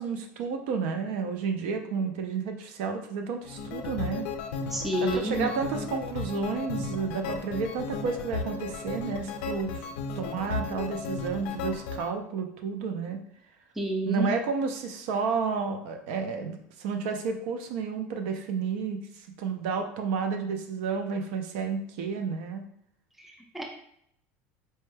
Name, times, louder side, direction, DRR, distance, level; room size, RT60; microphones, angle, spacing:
voice 1, 0.0-4.3 5.0-9.9 10.1-13.2 14.0-22.6, right 5 dB, 75° right, 5 dB, 0.5 m, -31 dB
sound 1, 3.5-12.1, left 4 dB, 80° left, 0.4 m, -35 dB
voice 2, 4.7-5.5 13.8-14.3 23.2-23.6, equal, 5° right, 1 dB, 0.4 m, -29 dB
4.3 x 2.2 x 3.2 m, 0.70 s
cardioid pair, 170°, 6 cm